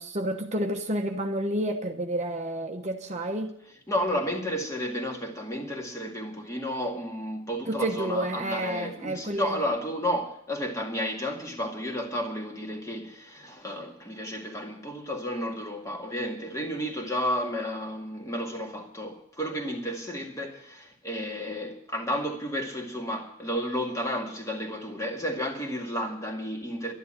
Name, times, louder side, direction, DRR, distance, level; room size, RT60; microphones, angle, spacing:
voice 1, 0.0-3.5 7.7-9.6, right 1 dB, 35° right, 1.1 m, -30 dB
voice 2, 3.9-26.9, equal, 15° left, 2.0 m, -32 dB
12.0 x 11.0 x 8.8 m
head